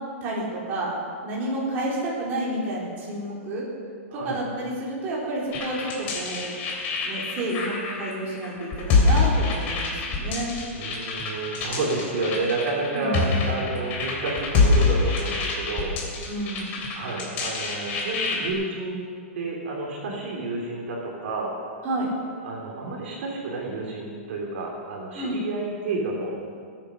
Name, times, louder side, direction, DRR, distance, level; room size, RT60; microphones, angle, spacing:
voice 1, 0.2-0.9 1.2-3.6 4.1-6.5 7.0-10.5 12.9-13.6 16.3-16.7 21.8-22.1 25.1-25.4, right 1 dB, 25° right, -6 dB, 4.2 m, -30 dB
sound 1, 5.5-18.5, left 3 dB, 25° left, 3.1 m, -26 dB
voice 2, 10.7-15.9 17.0-19.1 19.3-21.5 22.4-26.3, right 3 dB, 55° right, -2 dB, 3.5 m, -30 dB
20.5 x 9.5 x 6.5 m, 2.1 s
hypercardioid pair, 165°, 7 cm